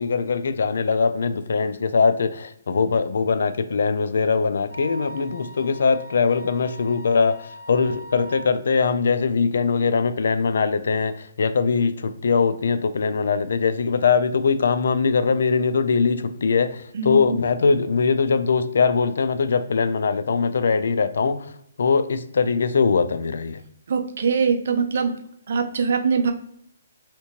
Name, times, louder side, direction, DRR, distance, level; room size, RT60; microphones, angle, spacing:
voice 1, 0.0-21.5 21.8-23.6, left 5 dB, 70° left, 0.3 m, -21 dB
Wind instrument woodwind instrument, 4.7-8.5, right 1 dB, 15° right, 1.0 m, -41 dB
voice 2, 16.9-17.4 23.9-25.1 25.5-26.3, right 5 dB, 60° right, 0.5 m, -22 dB
3.2 x 2.9 x 2.9 m
hypercardioid pair, 160°, 0 cm